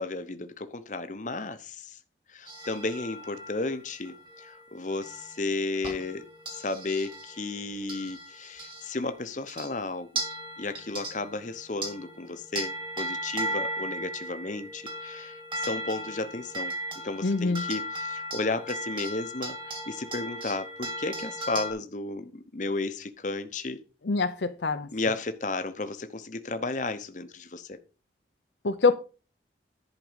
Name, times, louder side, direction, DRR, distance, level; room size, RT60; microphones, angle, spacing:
voice 1, 0.0-2.0 2.3-10.2 10.6-23.8 24.9-27.8, left 3 dB, 40° left, 0.9 m, -33 dB
sound 1, 2.5-9.1 9.5-9.8 10.1-21.7, right 1 dB, 25° right, 2.1 m, -37 dB
voice 2, 17.2-17.6 24.1-24.9 28.6-28.9, left 4 dB, 70° left, 0.7 m, -25 dB
11.0 x 5.1 x 5.1 m
head